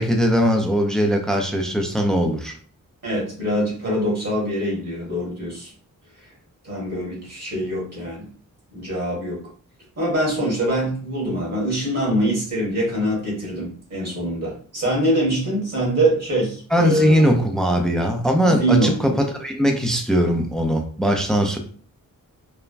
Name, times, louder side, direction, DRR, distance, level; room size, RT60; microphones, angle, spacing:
voice 1, 0.0-2.6 16.7-21.6, equal, ahead, 0.4 m, -20 dB
voice 2, 3.0-5.7 6.6-8.3 8.7-9.4 10.0-17.3 18.4-19.1, right 1 dB, 45° right, 1.5 m, -24 dB
3.2 x 2.1 x 2.4 m
wide cardioid pair, 100°, 34 cm